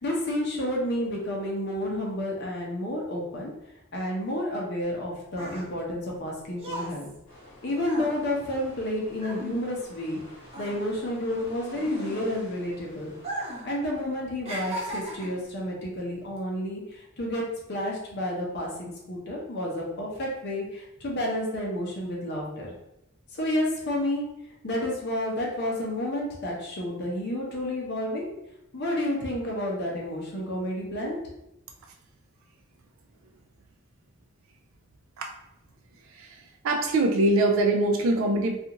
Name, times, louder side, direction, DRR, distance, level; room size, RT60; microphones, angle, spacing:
voice 1, 0.0-3.5 3.9-7.1 7.6-10.2 10.6-13.1 13.6-22.7 23.3-24.2 24.6-28.2 28.7-31.2, left 1 dB, 55° left, -2 dB, 0.7 m, -30 dB
sound 1, 5.0-10.2 10.5-12.6 13.1-13.7 14.0-15.5 16.2-16.4, right 1 dB, 30° right, 0.6 m, -37 dB
sound 2, 7.3-13.6, left 1 dB, 80° left, 1.2 m, -49 dB
voice 2, 36.0-38.6, right 2 dB, 75° right, 3 dB, 0.4 m, -24 dB
2.4 x 2.4 x 2.9 m, 0.86 s
head